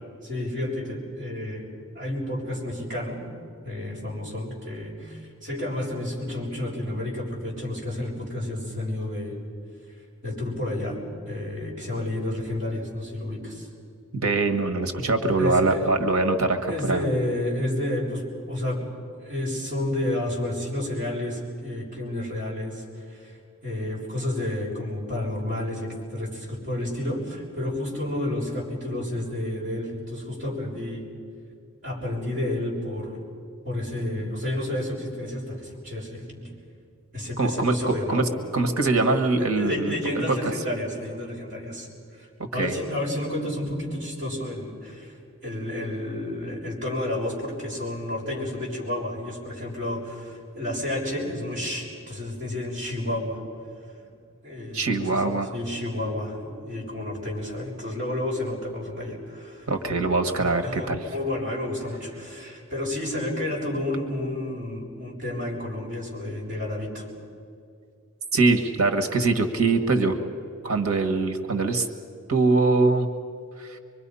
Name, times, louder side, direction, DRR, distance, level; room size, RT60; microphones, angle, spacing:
voice 1, 0.2-1.7 1.9-3.2 3.6-9.3 10.2-11.0 11.2-13.7 15.4-15.9 16.7-18.8 19.2-23.4 23.6-31.1 31.8-33.2 33.6-36.5 37.1-38.3 39.4-41.9 42.1-42.3 42.5-45.2 45.4-53.4 54.0-54.1 54.4-59.7 60.6-67.1, left 1 dB, 40° right, -4 dB, 6.3 m, -30 dB
voice 2, 14.1-17.0 37.4-39.9 40.3-40.4 42.5-42.7 54.7-55.5 59.7-61.0 68.3-70.2 70.6-71.9 72.3-73.1 73.6-73.8, right 3 dB, 80° right, 7 dB, 1.6 m, -23 dB
25.5 x 23.0 x 5.6 m, 2.4 s
head